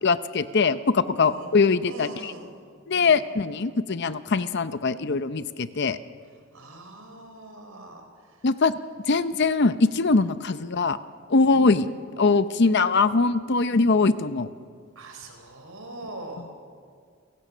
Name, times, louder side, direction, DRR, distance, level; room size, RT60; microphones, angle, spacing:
voice 1, 0.0-2.3 2.9-6.0 8.4-8.7 9.1-11.0 11.3-11.9 12.2-14.5, left 4 dB, 50° left, 13 dB, 0.7 m, -22 dB
voice 2, 1.2-1.5 1.9-2.5 2.9-3.2 6.5-8.4 11.5-11.7 15.0-16.4, right 2 dB, 80° right, 4 dB, 4.1 m, -42 dB
29.5 x 17.0 x 6.2 m, 2.1 s
head